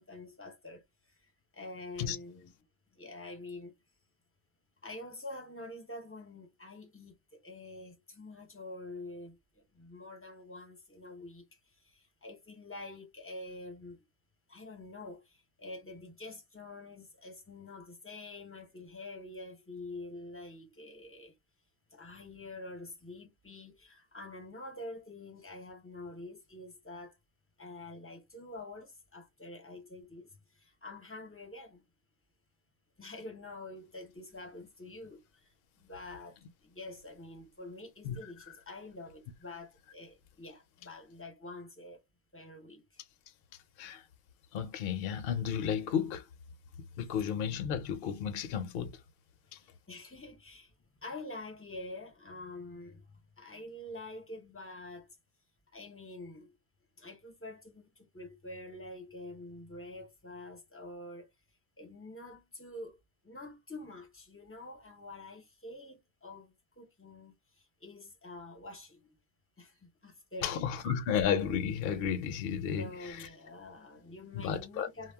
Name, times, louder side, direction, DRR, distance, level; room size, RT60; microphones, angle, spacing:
voice 1, 0.0-2.5 2.9-3.8 4.8-14.0 14.5-21.3 21.9-27.2 27.6-31.8 33.0-42.0 42.3-43.0 49.5-50.7 51.0-55.2 55.7-56.5 57.0-61.3 61.8-63.0 63.2-69.1 69.6-70.6 72.8-75.1, left 2 dB, 15° left, 0.5 m, -47 dB
voice 2, 44.5-46.2 47.0-49.0 49.5-49.6 70.4-73.3 74.3-74.9, left 8 dB, 60° left, 0.6 m, -33 dB
2.3 x 2.0 x 3.3 m
omnidirectional pair, 1.3 m